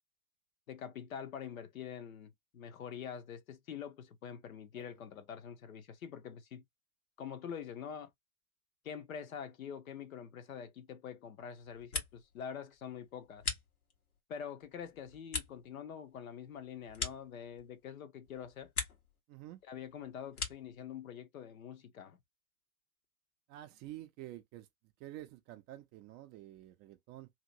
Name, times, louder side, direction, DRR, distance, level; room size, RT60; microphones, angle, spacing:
voice 1, 0.7-6.6 7.2-8.1 8.8-13.4 14.3-18.7 19.7-22.2, left 8 dB, 75° left, 0.9 m, -45 dB
sound 1, 11.6-12.4 12.7-14.2 14.6-17.9 18.2-19.2 19.5-20.8, left 4 dB, 90° left, 1.3 m, -42 dB
voice 2, 19.3-19.6 23.5-24.7 25.0-27.3, right 14 dB, 25° right, 0.4 m, -49 dB
2.9 x 2.8 x 2.6 m
hypercardioid pair, 100°, 42 cm